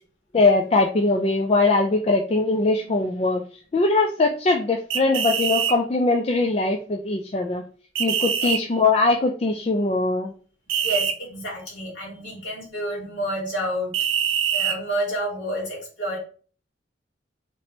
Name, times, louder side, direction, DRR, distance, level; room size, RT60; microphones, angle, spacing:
voice 1, 0.3-3.4 3.7-7.6 8.0-10.3, left 3 dB, 30° left, 3 dB, 0.3 m, -21 dB
sound 1, 4.9-5.8 8.0-8.6 10.7-11.1 13.9-14.8, right 8 dB, 90° right, 0.5 m, -24 dB
voice 2, 10.8-14.0 14.5-16.2, right 1 dB, 65° left, -4 dB, 1.9 m, -29 dB
3.0 x 2.9 x 4.3 m, 0.40 s
head